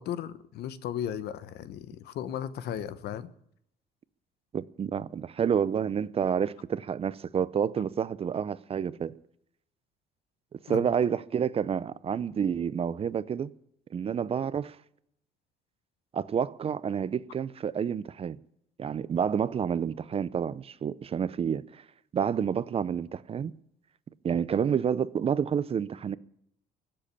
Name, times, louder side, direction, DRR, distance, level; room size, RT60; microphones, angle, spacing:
voice 1, 0.0-3.3 10.7-10.8, left 10 dB, 70° left, 1.0 m, -35 dB
voice 2, 4.5-9.1 10.5-13.5 13.9-14.8 16.1-18.4 18.8-21.6 22.1-23.5 24.2-26.2, right 7 dB, 35° right, 0.6 m, -29 dB
15.5 x 7.7 x 9.9 m
cardioid pair, 110°, 17 cm